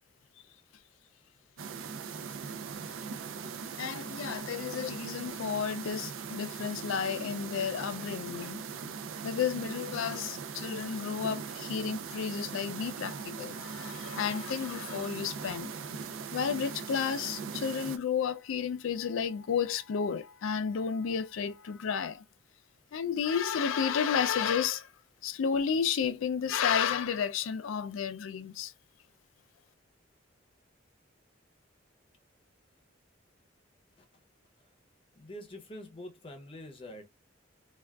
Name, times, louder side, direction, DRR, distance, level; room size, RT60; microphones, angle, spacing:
sound 1, 1.6-18.0, right 6 dB, 90° right, 0.4 m, -40 dB
voice 1, 3.8-8.6 9.2-15.9 16.3-22.2 22.9-24.9 25.2-28.7, left 7 dB, 90° left, 0.4 m, -32 dB
voice 2, 35.1-37.1, left 1 dB, 25° left, 0.6 m, -45 dB
3.5 x 2.3 x 2.2 m
head